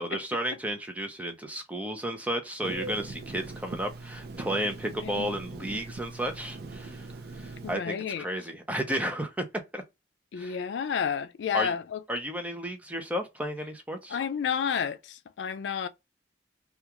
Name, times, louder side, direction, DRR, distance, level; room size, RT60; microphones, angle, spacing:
voice 1, 0.0-7.1 7.3-9.4 9.7-9.8 10.4-10.6 11.5-11.7 12.1-14.2, right 1 dB, 10° right, 0.5 m, -33 dB
Telephone, 2.6-7.8, right 2 dB, 60° right, 0.5 m, -41 dB
voice 2, 5.0-5.4 7.6-8.3 10.3-12.0 14.1-15.9, left 7 dB, 80° left, 0.3 m, -31 dB
2.4 x 2.3 x 2.8 m
head